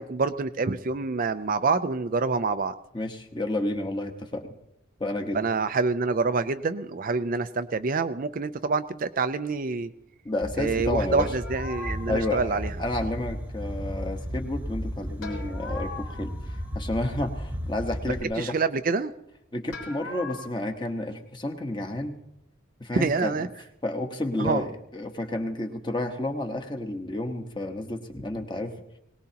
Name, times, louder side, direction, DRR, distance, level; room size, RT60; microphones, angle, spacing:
voice 1, 0.0-2.7 5.3-9.9 10.6-12.7 18.4-19.1 22.9-23.5 24.4-24.7, right 4 dB, 40° right, 9 dB, 0.5 m, -26 dB
voice 2, 2.9-4.5 5.0-5.4 10.2-11.3 12.1-18.6 19.5-22.1 22.8-23.5 23.8-28.7, left 1 dB, 20° left, 4 dB, 1.2 m, -31 dB
sound 1, 10.4-18.2, equal, 10° right, 1.0 m, -34 dB
sound 2, 11.2-12.5 15.2-17.1 19.7-20.5, left 4 dB, 85° left, 4.0 m, -40 dB
21.5 x 18.5 x 2.9 m, 0.81 s
head